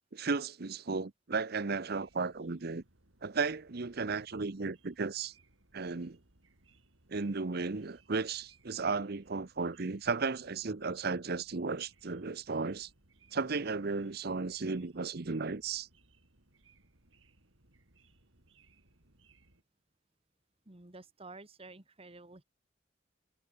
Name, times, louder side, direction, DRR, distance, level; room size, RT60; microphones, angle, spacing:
voice 1, 0.1-2.8 3.2-5.3 5.7-6.2 7.1-12.9 13.3-15.9, right 4 dB, 55° right, 0.8 m, -34 dB
sound 1, 1.7-19.6, right 2 dB, 85° right, 4.2 m, -67 dB
voice 2, 20.7-22.4, right 3 dB, 30° right, 1.7 m, -51 dB
head